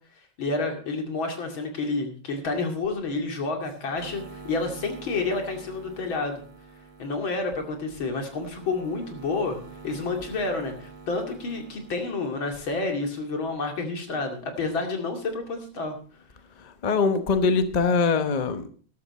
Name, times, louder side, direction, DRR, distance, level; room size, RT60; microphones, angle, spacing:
voice 1, 0.4-6.4 7.0-9.6 9.8-16.0, left 3 dB, 80° left, 3.2 m, -29 dB
sound 1, 4.0-12.2, right 4 dB, 30° right, 2.4 m, -46 dB
voice 2, 16.6-18.7, left 4 dB, 35° left, 0.7 m, -23 dB
13.0 x 12.0 x 4.2 m
omnidirectional pair, 2.2 m